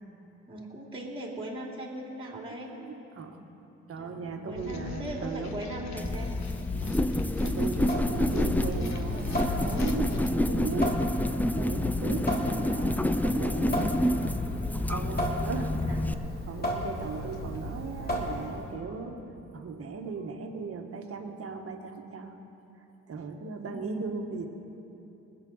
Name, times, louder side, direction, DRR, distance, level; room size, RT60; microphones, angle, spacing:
voice 1, 0.5-2.7 4.0-6.4 15.9-16.0 23.7-24.1, right 1 dB, 20° right, -1 dB, 2.7 m, -39 dB
voice 2, 2.8-3.5 3.9-5.6 6.8-7.0 7.4-11.0 11.5-14.2 14.9-16.0 16.4-19.3 19.5-22.4 23.1-24.5, right 5 dB, 50° right, 4 dB, 1.5 m, -37 dB
sound 1, 4.5-10.3, left 5 dB, 65° left, 1.0 m, -41 dB
sound 2, 6.0-16.1, left 1 dB, 5° left, 0.5 m, -28 dB
Water tap faucet / Sink (filling or washing) / Drip, 7.8-18.7, equal, 30° left, 2.8 m, -35 dB
20.0 x 8.3 x 6.4 m, 3.0 s
cardioid pair, 90°, 30 cm